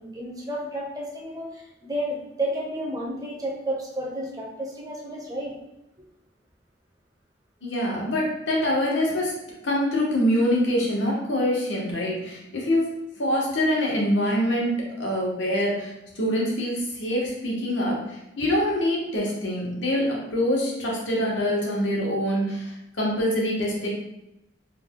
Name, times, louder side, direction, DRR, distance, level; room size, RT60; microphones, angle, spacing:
voice 1, 0.0-5.5, right 1 dB, 20° right, -2 dB, 0.6 m, -31 dB
voice 2, 7.6-9.3 9.6-12.9 13.2-23.9, equal, 90° left, -3 dB, 1.1 m, -25 dB
3.3 x 2.2 x 3.5 m, 0.91 s
head